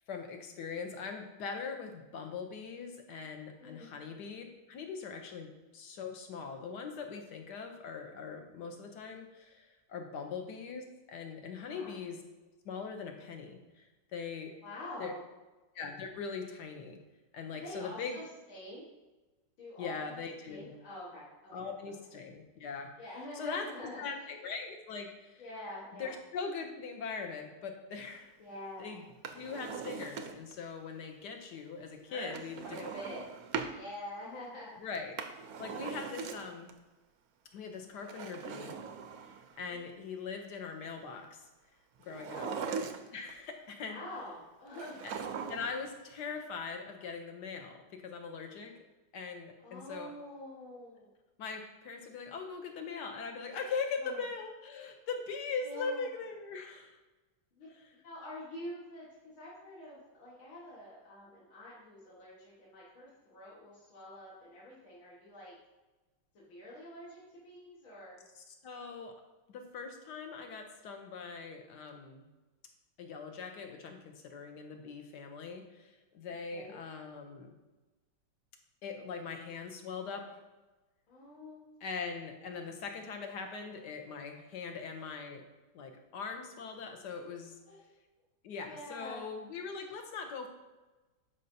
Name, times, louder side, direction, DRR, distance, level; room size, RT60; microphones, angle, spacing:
voice 1, 0.1-12.2 12.6-14.5 15.0-15.1 15.7-17.0 17.3-18.2 19.8-20.8 21.5-22.9 23.3-23.7 24.0-25.4 26.0-28.3 28.8-29.0 29.4-32.8 34.8-35.2 35.6-36.7 37.5-38.7 39.2-39.3 39.6-41.5 42.0-42.5 43.1-44.0 45.5-48.7 49.1-50.1 51.4-57.0 57.7-57.9 68.4-69.1 69.5-72.3 73.0-77.5 78.8-80.4 81.8-85.4 85.7-87.8 88.4-90.5, left 5 dB, 65° left, 4 dB, 1.3 m, -41 dB
voice 2, 11.6-11.9 14.6-15.3 17.5-18.9 19.6-20.2 20.5-21.7 23.0-24.3 25.4-26.1 28.4-28.9 32.1-32.3 32.7-33.3 33.7-34.9 39.7-39.8 42.3-42.9 43.9-45.2 49.6-51.1 54.0-54.2 55.6-56.0 57.5-65.6 66.3-68.2 76.5-76.8 81.1-81.6 87.7-87.8 88.6-89.3, left 1 dB, 80° left, -6 dB, 2.4 m, -46 dB
Drawer open or close, 29.1-30.6 32.3-33.8 34.9-36.7 38.0-39.6 42.1-43.3 44.7-45.9 46.1-46.2, right 6 dB, 70° right, 0.8 m, -40 dB
11.0 x 5.4 x 2.7 m, 1.2 s
omnidirectional pair, 2.2 m